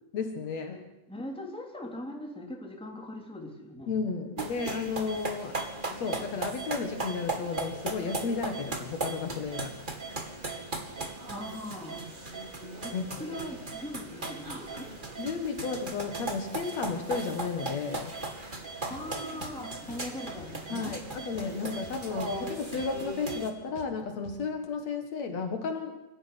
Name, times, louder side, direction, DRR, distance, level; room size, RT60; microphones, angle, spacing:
voice 1, 0.1-0.8 3.9-5.6 5.9-9.8 12.9-13.0 15.2-18.2 20.7-25.9, left 5 dB, 60° left, 5 dB, 2.8 m, -33 dB
voice 2, 1.1-3.9 11.3-12.0 12.8-12.9 13.2-14.9 18.9-20.9, left 1 dB, ahead, 1 dB, 3.4 m, -40 dB
sound 1, 4.4-23.5, right 2 dB, 20° right, 1.7 m, -37 dB
sound 2, 18.8-21.5 21.7-24.7, left 5 dB, 80° left, 3.4 m, -50 dB
24.5 x 14.5 x 10.0 m, 0.96 s
omnidirectional pair, 3.5 m